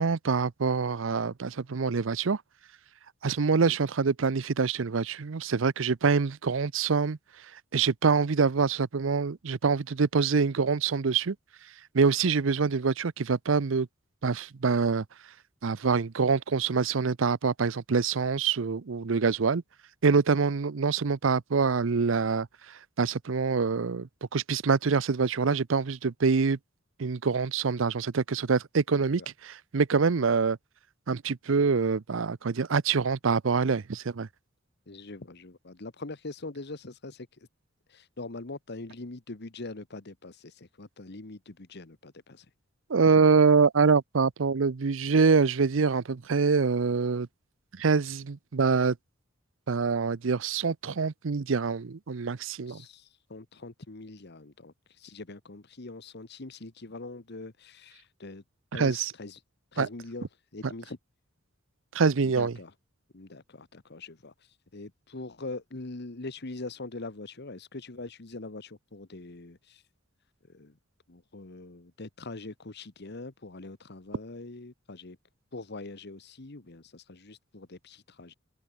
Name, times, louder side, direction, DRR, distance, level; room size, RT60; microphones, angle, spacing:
voice 1, 0.0-2.4 3.2-7.2 7.7-11.4 11.9-13.9 14.2-15.0 15.6-19.6 20.0-22.5 23.0-26.6 27.0-30.6 31.1-34.3 42.9-47.3 47.7-49.0 49.7-52.8 58.7-59.1 59.8-59.9 61.9-62.5, right 5 dB, 70° right, 0.6 m, -25 dB
voice 2, 34.9-37.5 37.9-42.5 52.7-58.4 58.7-59.4 59.7-61.0 62.2-62.7 63.1-64.3 64.7-69.8 70.4-70.8 71.1-75.2 75.5-78.3, left 2 dB, 55° left, 1.4 m, -43 dB
open air
head